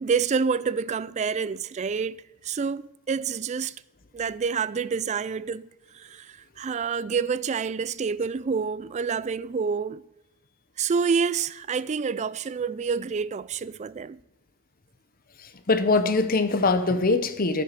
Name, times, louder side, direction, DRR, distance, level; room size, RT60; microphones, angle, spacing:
voice 1, 0.0-3.8 4.1-5.7 5.9-10.0 10.8-14.2, right 5 dB, 30° right, 0.3 m, -28 dB
voice 2, 15.4-17.6, left 3 dB, 40° left, 0.8 m, -23 dB
10.5 x 8.0 x 6.8 m
head